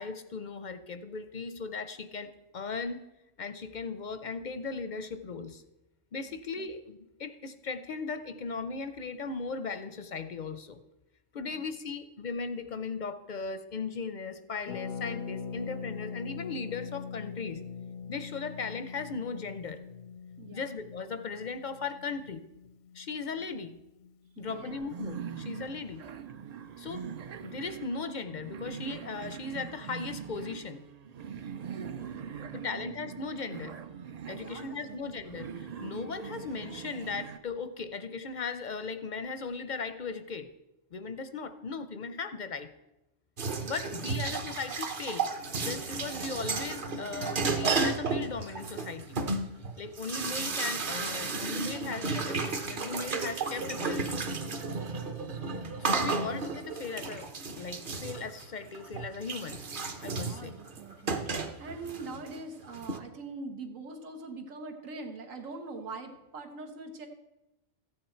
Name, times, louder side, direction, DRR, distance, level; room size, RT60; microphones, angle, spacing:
voice 1, 0.0-3.0 3.4-5.6 6.1-10.8 11.3-17.6 18.1-19.8 20.5-22.4 22.9-23.8 24.4-26.0 26.8-27.1 27.4-30.8 32.5-33.8 34.3-40.5 40.9-42.7 43.6-45.3 45.6-49.2 49.8-54.1 55.8-57.3 57.6-59.6 60.0-60.6, left 4 dB, 55° left, 10 dB, 0.5 m, -37 dB
voice 2, 6.3-6.7 11.3-11.7 20.4-20.6 24.4-24.8 32.5-32.9 34.4-35.0 44.0-44.4 55.6-55.7 60.1-67.1, right 3 dB, 90° right, 5 dB, 1.6 m, -43 dB
Harp, 14.7-24.3 24.5-24.6 24.8-25.1, left 6 dB, 85° left, 1.0 m, -42 dB
sound 1, 24.5-37.4, right 7 dB, 65° right, 0.4 m, -42 dB
sound 2, 43.4-63.0, right 4 dB, 45° right, 1.0 m, -33 dB
14.0 x 8.8 x 4.4 m, 0.98 s
omnidirectional pair, 1.3 m